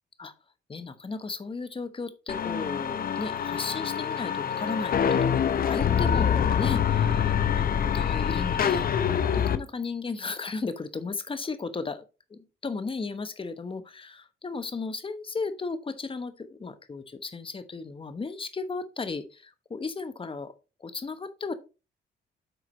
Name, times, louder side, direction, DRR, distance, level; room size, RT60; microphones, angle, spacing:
voice 1, 0.7-7.3 7.6-8.8 9.3-12.0 12.3-20.5 20.8-21.5, left 4 dB, 25° left, 11 dB, 1.1 m, -35 dB
sound 1, 2.3-9.6, left 8 dB, 50° left, 0.7 m, -25 dB
7.9 x 4.8 x 3.9 m, 0.30 s
cardioid pair, 90°, 20 cm